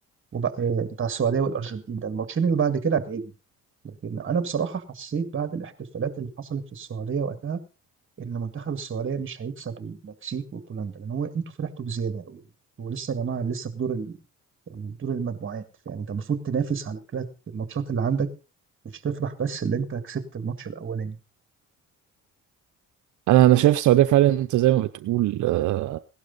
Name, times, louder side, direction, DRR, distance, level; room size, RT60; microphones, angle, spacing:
voice 1, 0.3-3.3 3.8-7.6 8.2-12.4 12.8-14.2 14.7-18.3 19.0-21.2, right 6 dB, 40° right, 2.1 m, -29 dB
voice 2, 23.3-26.0, right 14 dB, 75° right, 0.7 m, -19 dB
17.0 x 12.0 x 4.0 m
cardioid pair, 90°, 30 cm